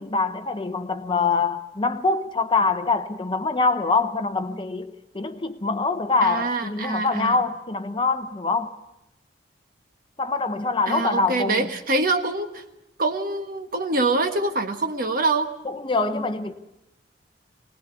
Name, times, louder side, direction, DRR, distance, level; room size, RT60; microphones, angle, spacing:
voice 1, 0.0-8.7 10.2-11.7 15.6-16.5, left 3 dB, 30° left, 0.9 m, -24 dB
voice 2, 6.2-7.3 10.9-12.6 13.0-15.5, right 3 dB, 50° right, 1.5 m, -25 dB
20.5 x 19.5 x 7.0 m
head